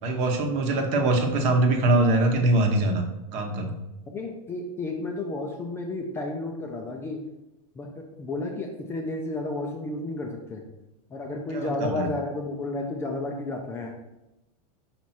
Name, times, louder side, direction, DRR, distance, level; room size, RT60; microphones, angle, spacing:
voice 1, 0.0-3.0 3.3-3.8 11.5-12.1, right 2 dB, 40° right, 3 dB, 1.0 m, -23 dB
voice 2, 4.1-7.2 7.7-10.6 11.1-13.9, left 2 dB, 15° left, 1 dB, 0.5 m, -32 dB
5.8 x 4.6 x 4.3 m, 0.95 s
supercardioid pair, 165°, 19 cm